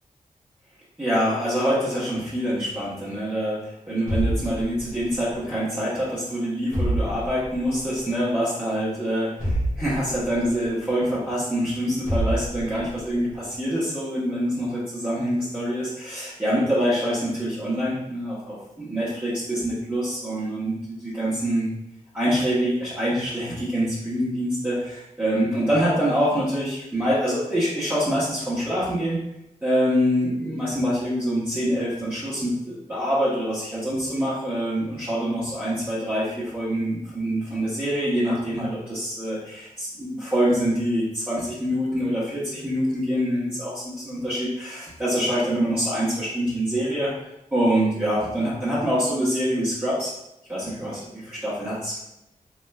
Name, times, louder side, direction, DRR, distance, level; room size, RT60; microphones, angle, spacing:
voice 1, 1.0-21.7 22.1-29.2 29.6-47.1 47.5-50.1 50.5-52.0, equal, 10° right, -11 dB, 1.1 m, -25 dB
sound 1, 4.1-5.2 6.7-7.7 9.4-10.5 12.1-13.0, right 1 dB, 55° left, 1.3 m, -27 dB
3.1 x 2.9 x 2.3 m, 0.86 s
cardioid pair, 60°, 15 cm